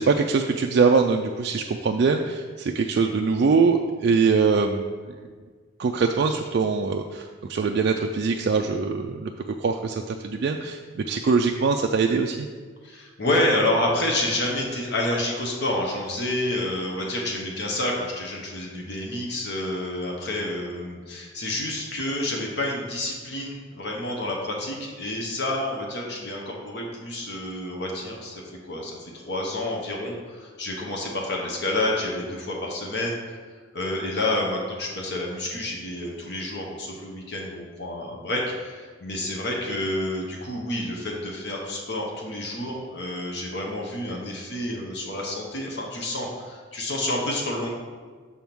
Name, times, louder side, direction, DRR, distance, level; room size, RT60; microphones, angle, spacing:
voice 1, 0.0-4.9 5.8-9.3 9.6-12.5, right 4 dB, 55° right, 3 dB, 0.3 m, -23 dB
voice 2, 12.8-33.4 33.7-47.7, left 1 dB, 55° left, -1 dB, 1.0 m, -29 dB
7.0 x 3.5 x 5.9 m, 1.5 s
head